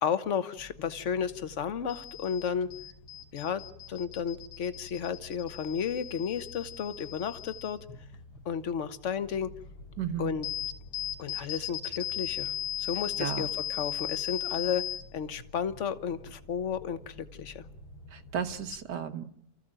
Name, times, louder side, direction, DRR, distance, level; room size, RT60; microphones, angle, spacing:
voice 1, 0.0-2.7 3.3-7.8 8.4-9.5 10.2-10.4 11.2-14.8 15.1-17.6, left 7 dB, 50° left, 12 dB, 1.4 m, -33 dB
sound 1, 0.6-18.8, left 9 dB, 75° left, 3.6 m, -39 dB
voice 2, 10.0-10.4 13.2-13.5 18.1-19.4, right 8 dB, 85° right, 8 dB, 1.9 m, -34 dB
29.0 x 15.0 x 9.0 m, 0.75 s
omnidirectional pair, 1.8 m